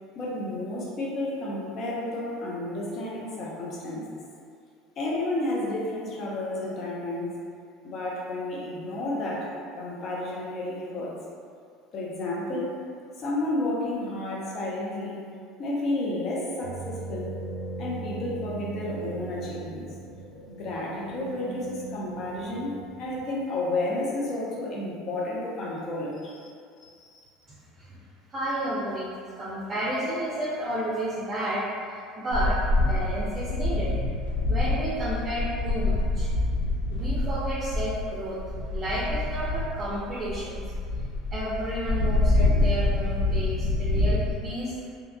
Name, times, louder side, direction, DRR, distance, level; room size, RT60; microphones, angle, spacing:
voice 1, 0.1-4.1 5.0-7.3 7.8-11.2 11.9-12.8 13.2-15.3 15.6-17.4 17.8-19.9 20.5-26.5 26.8-27.2, left 2 dB, 50° left, -4 dB, 0.6 m, -31 dB
sound 1, 16.6-23.3, right 3 dB, 90° right, 0.3 m, -38 dB
voice 2, 28.3-29.1 29.4-32.6 32.9-33.9 34.5-36.3 36.9-38.4 38.7-40.6 41.3-44.8, right 1 dB, 35° right, -8 dB, 0.5 m, -31 dB
sound 2, 32.3-44.4, left 2 dB, 90° left, 0.5 m, -26 dB
2.8 x 2.3 x 2.2 m, 2.3 s
hypercardioid pair, 80°, 0 cm